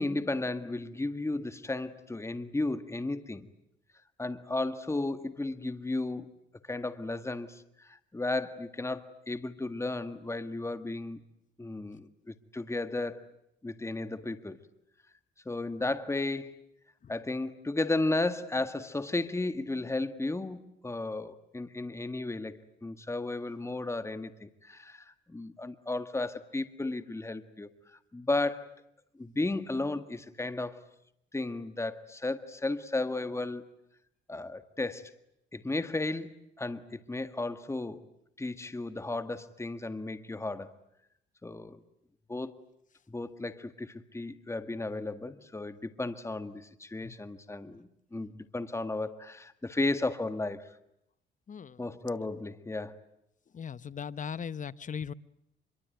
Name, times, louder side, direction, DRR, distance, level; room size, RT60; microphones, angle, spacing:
voice 1, 0.0-3.5 4.2-6.3 6.6-11.2 11.6-13.3 13.6-14.6 15.5-16.6 17.1-28.8 29.2-30.8 31.3-33.6 34.3-35.1 35.5-38.1 38.4-40.7 41.4-41.8 42.3-42.5 43.1-50.7 51.8-53.0, left 2 dB, 15° left, 11 dB, 1.8 m, -34 dB
voice 2, 51.5-51.8 53.5-55.1, left 7 dB, 40° left, 17 dB, 1.0 m, -38 dB
26.0 x 23.5 x 9.2 m, 0.78 s
cardioid pair, 90°, 20 cm